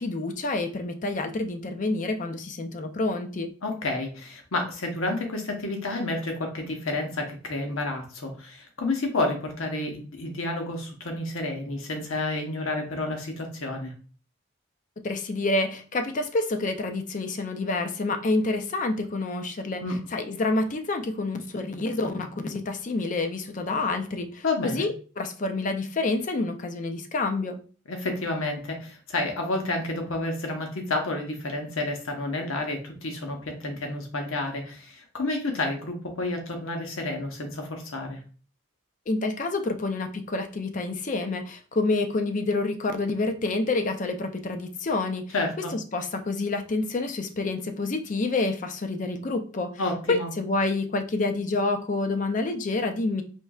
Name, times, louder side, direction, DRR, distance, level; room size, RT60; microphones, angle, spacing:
voice 1, 0.0-3.5 15.0-19.8 20.1-27.6 39.1-45.3 45.7-49.8 50.1-53.2, left 2 dB, 40° left, 7 dB, 0.4 m, -28 dB
voice 2, 3.6-13.9 19.8-20.0 24.4-24.9 27.9-38.2 45.3-45.7 49.8-50.3, left 2 dB, 80° left, 3 dB, 1.0 m, -30 dB
4.3 x 3.1 x 2.3 m, 0.38 s
head